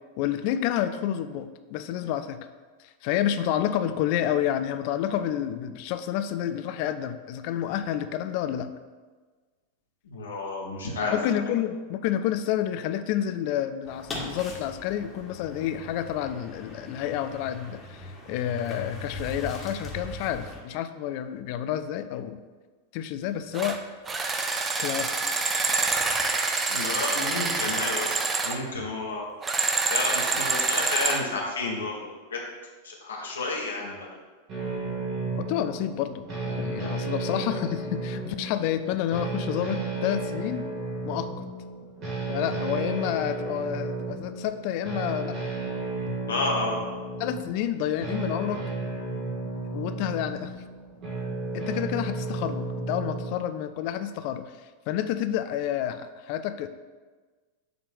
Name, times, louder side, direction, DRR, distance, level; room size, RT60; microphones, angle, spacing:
voice 1, 0.2-2.4 3.0-8.7 11.1-22.4 22.9-23.8 24.8-25.1 35.4-40.7 41.0-41.5 42.3-45.4 46.1-46.2 47.2-48.6 49.7-50.5 51.5-54.5 54.9-56.7, left 10 dB, 45° left, 10 dB, 0.4 m, -29 dB
voice 2, 10.1-11.1 26.7-28.2 28.4-29.3 29.9-32.4 32.8-34.1 46.3-46.8, left 3 dB, 70° left, -2 dB, 1.3 m, -31 dB
sound 1, 13.8-20.6, left 1 dB, 20° left, 1.6 m, -40 dB
sound 2, 23.5-23.8 24.1-28.6 29.4-31.2, right 4 dB, 20° right, 0.6 m, -26 dB
sound 3, 34.5-53.3, right 3 dB, 35° right, 1.9 m, -33 dB
7.0 x 3.3 x 6.1 m, 1.4 s
figure-of-eight pair, 90°, 0 cm